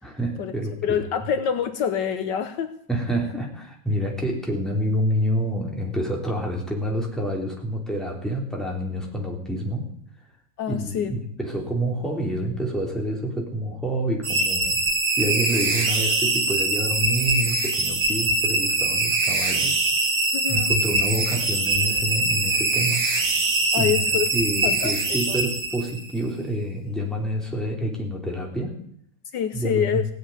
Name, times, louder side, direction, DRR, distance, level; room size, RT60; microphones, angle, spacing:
voice 1, 0.0-1.0 2.9-9.9 10.7-14.8 15.2-19.8 20.5-23.0 23.8-24.0 24.3-28.8 29.5-30.0, right 1 dB, ahead, -1 dB, 3.4 m, -28 dB
voice 2, 0.8-2.8 10.6-11.1 20.3-20.7 23.7-25.0 25.3-25.4 29.3-30.0, left 8 dB, 75° left, 9 dB, 1.5 m, -26 dB
sound 1, 14.2-26.1, right 2 dB, 75° right, 2.8 m, -23 dB
17.5 x 7.9 x 9.5 m, 0.66 s
omnidirectional pair, 2.0 m